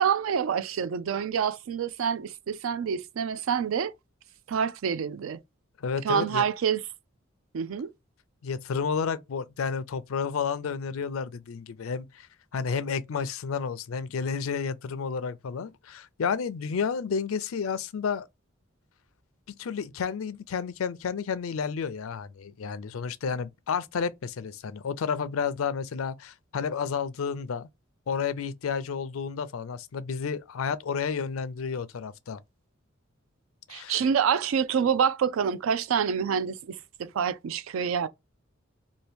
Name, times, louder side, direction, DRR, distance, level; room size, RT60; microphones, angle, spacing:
voice 1, 0.0-3.9 4.5-5.4 6.0-6.8 7.5-7.9 33.7-38.1, right 7 dB, 70° right, 0.4 m, -27 dB
voice 2, 5.8-6.4 8.4-12.3 12.5-18.3 19.6-27.7 28.1-32.4 33.7-34.0, left 6 dB, 85° left, 0.4 m, -31 dB
2.7 x 2.6 x 3.3 m
head